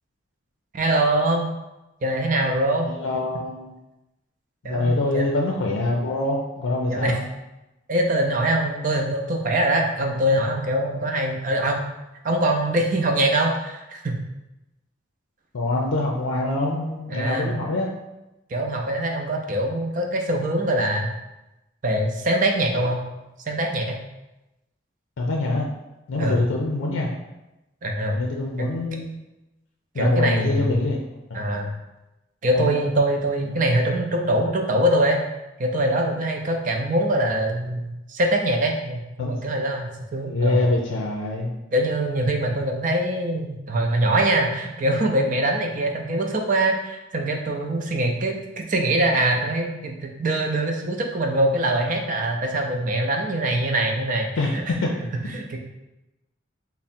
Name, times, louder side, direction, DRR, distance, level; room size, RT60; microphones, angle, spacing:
voice 1, 0.7-1.5 2.0-2.9 4.6-5.3 6.9-7.2 7.9-11.8 12.2-14.2 17.1-17.5 18.5-21.1 21.8-23.0 23.5-24.0 26.2-26.4 27.8-28.2 28.6-28.7 30.0-30.8 31.3-31.7 32.4-35.2 35.6-40.7 41.7-54.6 55.3-55.6, right 1 dB, 40° right, 2 dB, 0.5 m, -23 dB
voice 2, 2.9-3.7 4.6-7.2 15.5-17.9 22.7-22.9 25.2-25.6 26.1-27.1 28.1-29.1 29.9-31.0 31.3-31.4 32.5-32.7 39.2-39.3 40.2-41.5 54.4-54.9, left 2 dB, 90° left, 0 dB, 0.5 m, -24 dB
3.5 x 2.1 x 4.2 m, 0.97 s
head